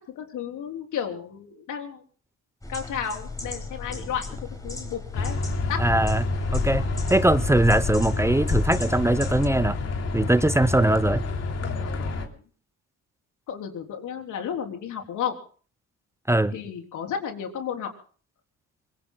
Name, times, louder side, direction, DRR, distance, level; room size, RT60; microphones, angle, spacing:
voice 1, 0.2-2.0 2.7-4.3 4.6-5.4 5.7-5.8 11.4-12.3 13.5-15.3 16.5-17.9, left 8 dB, 80° left, 3.7 m, -33 dB
sound 1, 2.6-9.5, left 3 dB, 10° left, 5.2 m, -37 dB
sound 2, 5.1-12.3, left 3 dB, 55° left, 3.2 m, -28 dB
voice 2, 5.8-6.2 6.5-6.8 7.1-9.8 10.1-11.2 16.3-16.5, right 1 dB, 10° right, 0.7 m, -21 dB
25.5 x 22.0 x 2.2 m
cardioid pair, 90°, 30 cm